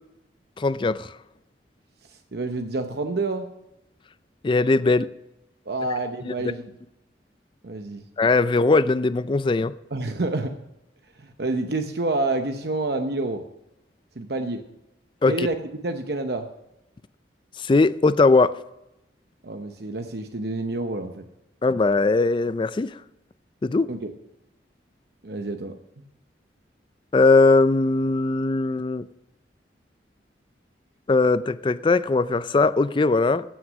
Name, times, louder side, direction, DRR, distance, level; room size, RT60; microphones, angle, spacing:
voice 1, 0.6-1.1 4.4-5.1 6.3-6.4 8.2-9.7 15.2-15.5 17.6-18.5 21.6-23.0 23.6-23.9 27.1-29.0 31.1-33.4, left 3 dB, 25° left, 0.4 m, -20 dB
voice 2, 2.3-3.5 5.7-6.7 7.6-8.0 9.9-10.5 11.2-13.4 14.2-14.6 15.3-15.6 15.8-16.5 19.4-21.2 23.9-24.1 25.2-25.7, right 2 dB, 60° right, 0.8 m, -28 dB
15.5 x 6.3 x 6.2 m
head